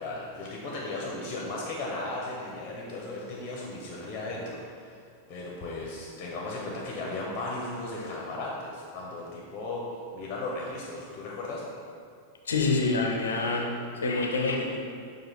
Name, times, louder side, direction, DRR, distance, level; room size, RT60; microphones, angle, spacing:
voice 1, 0.0-5.0 5.3-9.8 10.1-11.6, left 2 dB, 30° left, -3 dB, 0.6 m, -36 dB
voice 2, 12.5-14.8, left 3 dB, 70° left, 2 dB, 0.4 m, -27 dB
6.1 x 2.4 x 3.1 m, 2.2 s
figure-of-eight pair, 90°, 0 cm